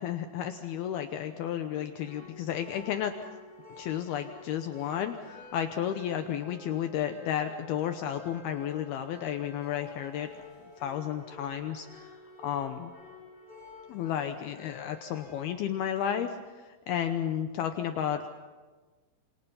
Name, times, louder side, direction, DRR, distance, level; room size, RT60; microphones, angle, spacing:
voice 1, 0.0-3.1 3.8-10.4 10.8-12.0 12.4-12.9 13.9-16.4 16.6-18.3, left 9 dB, 90° left, 7 dB, 2.2 m, -32 dB
sound 1, 2.0-15.5, left 4 dB, 10° left, 5.7 m, -50 dB
28.0 x 27.0 x 5.6 m, 1.3 s
omnidirectional pair, 5.8 m